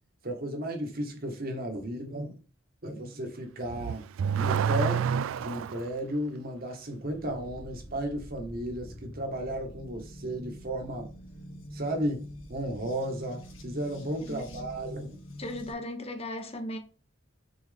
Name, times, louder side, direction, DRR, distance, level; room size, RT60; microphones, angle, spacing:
voice 1, 0.2-2.4 2.8-4.0 4.3-5.1 5.4-11.1 11.7-15.1, right 1 dB, 50° right, 1.8 m, -34 dB
Car / Accelerating revving vroom, 3.6-5.9, right 7 dB, 90° right, 0.3 m, -28 dB
sound 1, 7.0-15.7, equal, 85° left, 2.1 m, -45 dB
voice 2, 14.3-14.7 15.4-16.8, left 1 dB, 30° left, 1.2 m, -37 dB
6.2 x 4.4 x 3.6 m
head